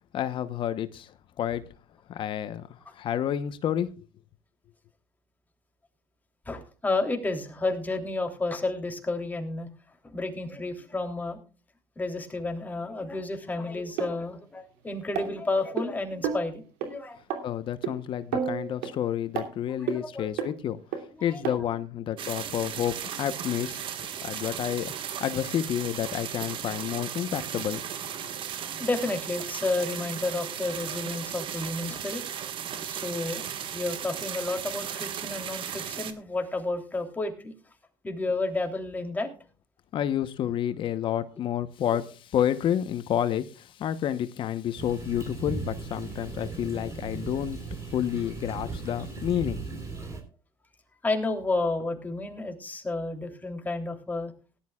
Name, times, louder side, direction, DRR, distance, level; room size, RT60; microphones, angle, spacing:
voice 1, 0.1-1.6 2.1-4.0 17.4-23.8 24.2-24.9 25.2-27.8 28.2-28.3 39.9-49.8, left 10 dB, 50° left, 1.0 m, -30 dB
voice 2, 6.4-9.7 10.0-11.4 12.0-17.2 19.8-20.3 21.2-21.6 28.8-32.2 32.8-33.5 33.7-37.5 38.0-39.3 49.9-50.2 51.0-54.3, left 2 dB, 15° left, 3.2 m, -31 dB
sound 1, 14.0-14.1 15.1-15.8 16.2-16.5 16.8-16.9 17.3-17.4 17.8-17.9 18.3-18.9 19.4-19.5 19.9-20.0 20.4-20.5 20.9-21.0 21.4-21.5 22.2-22.3, right 8 dB, 85° right, 3.0 m, -30 dB
sound 2, 22.2-36.1, right 9 dB, 50° right, 1.6 m, -36 dB
sound 3, 44.8-50.2, right 4 dB, 30° right, 3.9 m, -37 dB
18.5 x 12.0 x 2.4 m
cardioid pair, 105°, 11 cm